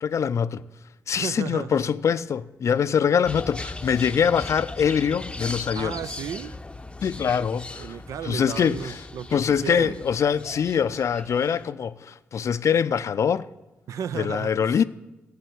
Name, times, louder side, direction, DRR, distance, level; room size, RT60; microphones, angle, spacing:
voice 1, 0.0-0.6 1.1-6.0 7.0-8.0 8.2-9.0 9.3-13.5 14.1-14.8, left 7 dB, 60° left, 0.4 m, -24 dB
voice 2, 1.1-1.8 5.8-6.6 7.8-10.0 13.9-14.8, right 8 dB, 70° right, 0.4 m, -34 dB
sound 1, 3.2-11.7, left 2 dB, 15° left, 0.7 m, -39 dB
12.5 x 7.0 x 8.3 m
hypercardioid pair, 40°, 6 cm